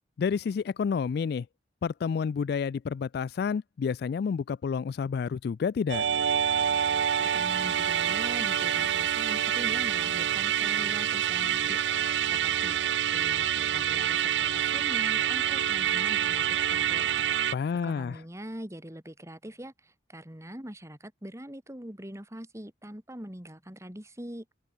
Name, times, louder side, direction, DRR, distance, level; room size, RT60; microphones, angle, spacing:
voice 1, 0.2-1.5 1.8-6.0 17.5-18.1, left 6 dB, 60° left, 0.3 m, -29 dB
Musical instrument, 5.9-17.5, right 9 dB, 80° right, 0.5 m, -27 dB
voice 2, 7.2-11.8 12.3-17.2 17.8-24.4, equal, 15° right, 3.3 m, -43 dB
open air
head